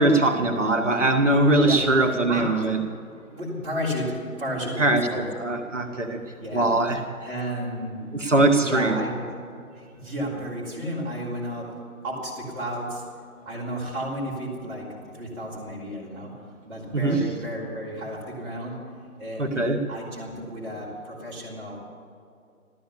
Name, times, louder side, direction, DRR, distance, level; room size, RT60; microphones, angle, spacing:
voice 1, 0.0-2.8 4.8-6.2 6.5-7.0 8.1-9.0 16.9-17.2 19.4-19.8, right 2 dB, 55° right, 3 dB, 1.8 m, -21 dB
voice 2, 3.3-5.3 6.3-6.7 7.2-8.2 8.5-9.3 9.8-11.8 12.0-13.0 13.5-16.4 16.7-18.8 19.2-21.8, equal, 10° right, -8 dB, 3.6 m, -33 dB
14.5 x 14.0 x 7.0 m, 2.4 s
figure-of-eight pair, 155°, 43 cm